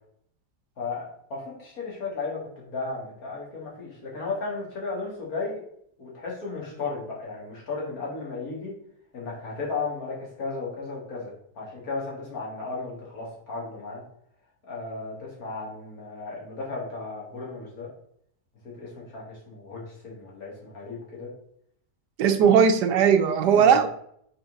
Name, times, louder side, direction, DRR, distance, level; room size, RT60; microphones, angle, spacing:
voice 1, 0.8-5.6 6.0-8.7 9.1-14.0 14.6-17.9 18.6-21.3 22.4-22.5 23.4-23.8, left 3 dB, 60° left, -3 dB, 2.5 m, -35 dB
voice 2, 22.2-23.9, right 7 dB, 80° right, 7 dB, 1.3 m, -18 dB
6.1 x 4.4 x 3.8 m, 0.69 s
omnidirectional pair, 1.8 m